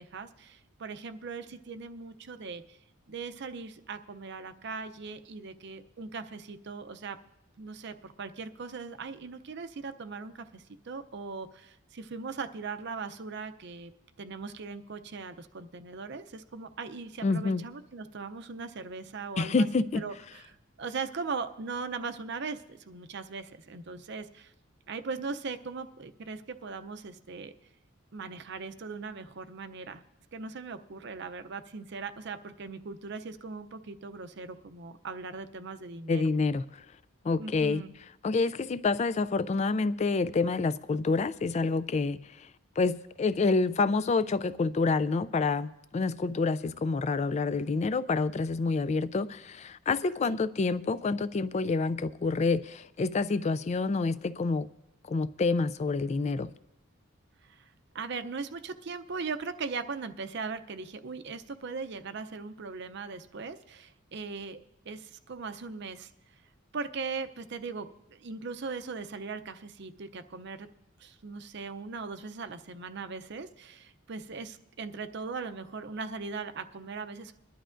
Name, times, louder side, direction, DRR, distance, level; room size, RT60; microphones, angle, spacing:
voice 1, 0.0-2.8 3.1-7.2 7.6-13.9 14.2-24.5 24.9-27.5 28.1-30.0 30.3-36.2 37.4-37.9 50.2-50.4 57.4-64.6 64.9-66.1 66.7-70.7 71.0-77.3, right 4 dB, 55° right, 9 dB, 0.6 m, -39 dB
voice 2, 17.2-17.6 19.4-20.0 36.1-36.6 37.2-37.8 38.2-42.5 42.8-54.7 55.1-56.5, left 4 dB, 35° left, 16 dB, 0.3 m, -28 dB
22.0 x 11.5 x 2.5 m, 0.85 s
head